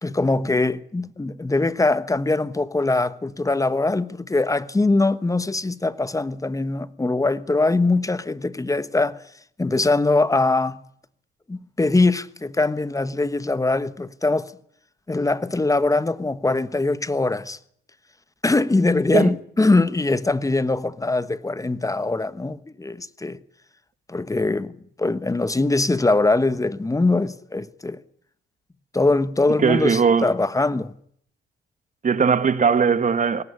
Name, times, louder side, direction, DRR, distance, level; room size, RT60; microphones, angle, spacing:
voice 1, 0.0-9.2 9.6-10.8 11.5-14.5 15.1-17.6 18.4-23.4 24.1-28.0 28.9-30.9, left 2 dB, 15° left, 1.2 m, -22 dB
voice 2, 29.6-30.3 32.0-33.4, right 6 dB, 40° right, 1.8 m, -19 dB
18.5 x 18.0 x 9.8 m
cardioid pair, 90°, 20 cm